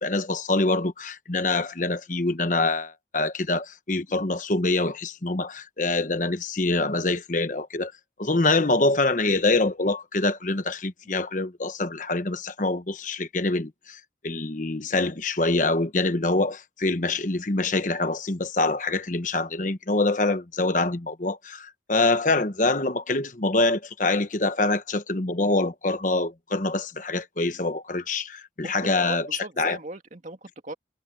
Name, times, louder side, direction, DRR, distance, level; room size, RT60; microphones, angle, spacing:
voice 1, 0.0-7.9 8.2-29.8, left 2 dB, 45° left, 1.2 m, -25 dB
voice 2, 28.6-30.7, right 2 dB, 45° right, 2.2 m, -38 dB
head